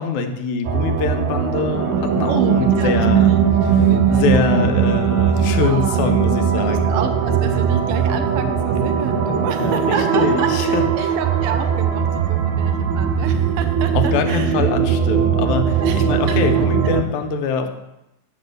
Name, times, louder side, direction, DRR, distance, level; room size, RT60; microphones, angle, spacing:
voice 1, 0.0-3.3 4.1-6.9 9.3-10.8 13.9-17.7, left 5 dB, 85° left, 6 dB, 2.2 m, -23 dB
sound 1, 0.7-17.0, right 7 dB, 85° right, 2.3 m, -19 dB
voice 2, 2.3-3.4 3.8-4.8 5.6-6.1 6.6-14.5 15.8-16.0 16.3-16.6, right 6 dB, 65° right, 7 dB, 1.5 m, -29 dB
10.0 x 5.4 x 6.5 m, 0.91 s
omnidirectional pair, 3.3 m